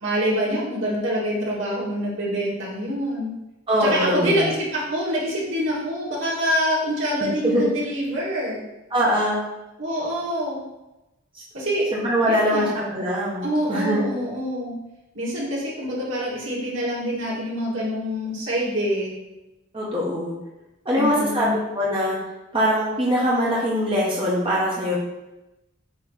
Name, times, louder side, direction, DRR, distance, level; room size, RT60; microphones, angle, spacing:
voice 1, 0.0-3.3 3.8-8.6 9.8-10.6 11.5-11.9 12.3-12.8 13.4-14.7 15.1-19.1 20.9-21.6, equal, 75° right, -6 dB, 2.4 m, -26 dB
voice 2, 3.7-4.5 7.2-7.7 8.9-9.4 11.3-11.4 11.9-14.1 19.7-20.3 20.8-22.2 22.5-25.0, equal, 25° right, -6 dB, 1.2 m, -22 dB
8.5 x 3.2 x 4.1 m, 0.97 s
head